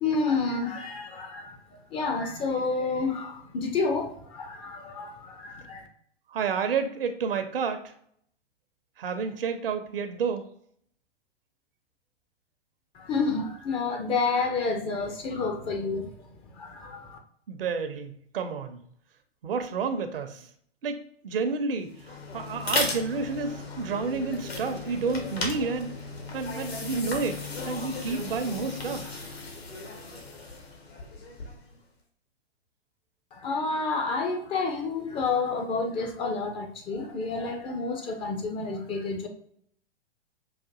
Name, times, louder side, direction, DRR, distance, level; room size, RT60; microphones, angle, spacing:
voice 1, 0.0-1.6 1.9-5.9 12.9-16.1 16.6-17.2 33.3-39.3, left 4 dB, 20° left, 4 dB, 0.4 m, -29 dB
voice 2, 6.3-7.9 9.0-10.4 17.5-18.8 19.4-20.5 20.8-21.9 22.3-25.9 26.3-29.2, right 5 dB, 65° right, 8 dB, 0.7 m, -30 dB
sound 1, 21.9-31.7, left 3 dB, 75° left, 1.2 m, -36 dB
5.8 x 2.5 x 2.4 m, 0.64 s
figure-of-eight pair, 105°, 31 cm